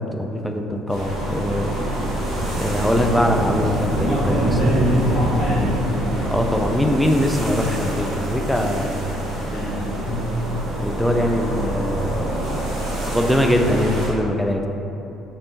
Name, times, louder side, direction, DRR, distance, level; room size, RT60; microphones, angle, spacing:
voice 1, 0.0-1.7 2.5-4.6 6.2-9.2 10.8-12.4 13.1-14.7, left 1 dB, 5° left, 3 dB, 0.4 m, -22 dB
sound 1, 0.9-14.1, right 1 dB, 65° right, 1.0 m, -26 dB
voice 2, 3.0-3.6 3.9-5.8 9.4-10.3, equal, 50° left, -8 dB, 1.2 m, -24 dB
3.3 x 2.9 x 3.7 m, 2.9 s
hypercardioid pair, 50°, 0 cm